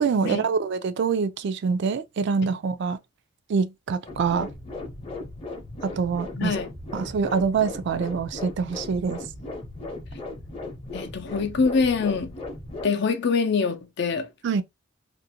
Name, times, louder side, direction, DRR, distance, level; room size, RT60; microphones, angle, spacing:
voice 1, 0.0-3.0 3.5-4.5 5.8-6.5 6.9-9.2 14.4-14.6, right 5 dB, 60° right, 0.3 m, -25 dB
sound 1, 4.1-12.9, left 2 dB, 30° left, 0.7 m, -37 dB
voice 2, 6.4-6.7 10.9-12.4 12.8-14.3, left 5 dB, 60° left, 0.5 m, -24 dB
2.5 x 2.1 x 2.7 m
head